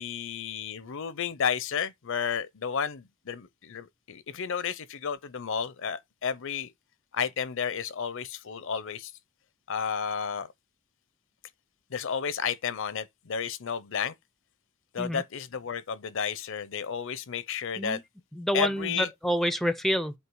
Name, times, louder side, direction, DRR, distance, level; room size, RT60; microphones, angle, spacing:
voice 1, 0.0-6.7 7.1-9.1 9.7-10.5 11.9-14.1 14.9-18.0 18.5-19.1, left 7 dB, 60° left, 0.6 m, -32 dB
voice 2, 18.3-20.1, equal, ahead, 0.4 m, -28 dB
8.0 x 2.8 x 4.6 m
head